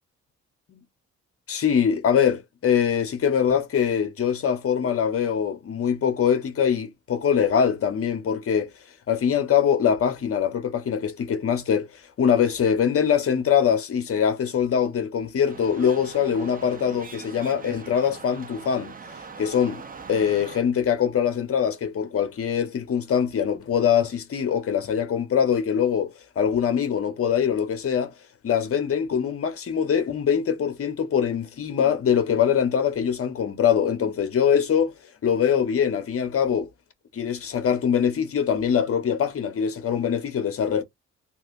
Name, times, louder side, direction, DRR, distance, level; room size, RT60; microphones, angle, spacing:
voice 1, 1.5-8.7 9.1-18.9 19.4-19.8 20.1-28.1 28.4-34.9 35.2-36.7 37.1-40.8, left 8 dB, 50° left, 1.0 m, -23 dB
sound 1, 15.4-20.6, right 5 dB, 30° right, 0.7 m, -42 dB
3.3 x 2.6 x 2.5 m
cardioid pair, 90°, 30 cm